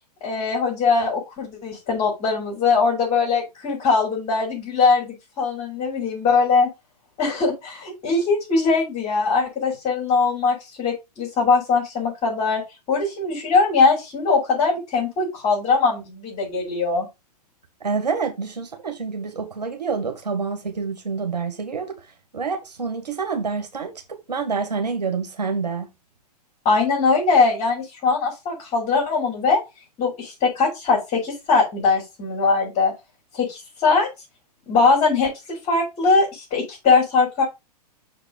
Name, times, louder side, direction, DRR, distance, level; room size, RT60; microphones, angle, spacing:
voice 1, 0.2-6.7 7.2-12.6 12.9-17.1 26.6-29.6 30.0-32.9 33.3-34.1 34.7-37.4, left 4 dB, 30° left, 4.5 m, -21 dB
voice 2, 17.8-22.1 22.3-25.9, right 5 dB, 90° right, 2.0 m, -27 dB
6.7 x 4.1 x 5.3 m
hypercardioid pair, 115°, 21 cm